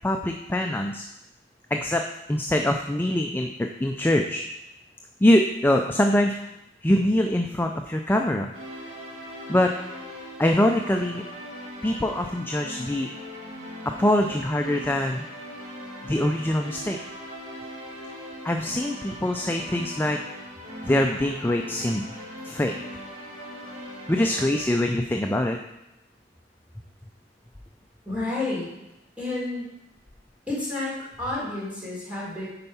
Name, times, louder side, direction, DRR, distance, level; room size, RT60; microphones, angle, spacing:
voice 1, 0.0-1.1 1.7-2.0 2.3-4.4 5.2-6.5 6.8-8.5 9.5-9.7 10.4-11.2 11.8-13.1 14.0-15.2 16.0-17.0 18.4-20.2 20.8-22.1 22.4-22.7 24.1-25.6, left 1 dB, 10° left, 3 dB, 0.4 m, -23 dB
sound 1, 8.5-24.7, equal, 60° right, 2.2 m, -40 dB
voice 2, 28.1-28.7 29.2-29.7 30.5-32.5, left 2 dB, 5° right, -6 dB, 3.5 m, -30 dB
9.7 x 4.6 x 5.5 m, 0.91 s
head